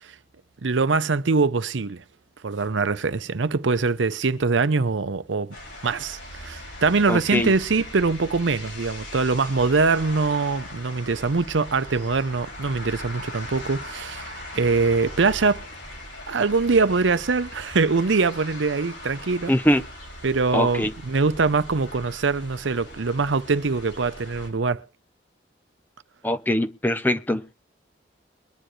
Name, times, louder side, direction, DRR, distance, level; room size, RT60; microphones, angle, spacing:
voice 1, 0.6-2.0 2.4-5.5 5.8-15.6 16.3-19.5 20.2-24.8, right 4 dB, 85° right, 0.7 m, -23 dB
sound 1, 5.5-24.5, left 1 dB, 85° left, 6.1 m, -40 dB
voice 2, 7.1-7.5 19.5-19.8 20.5-20.9 26.2-27.5, left 1 dB, 10° left, 0.7 m, -22 dB
22.5 x 10.0 x 3.2 m
head